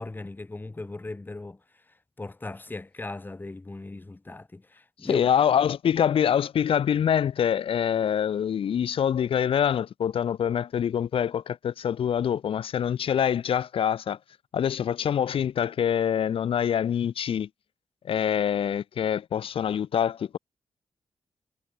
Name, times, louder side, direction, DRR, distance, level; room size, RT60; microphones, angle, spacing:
voice 1, 0.0-5.3, left 2 dB, 20° left, 1.4 m, -38 dB
voice 2, 5.0-14.2 14.5-17.5 18.0-20.4, left 8 dB, 70° left, 1.0 m, -25 dB
cardioid pair, 80°, 10 cm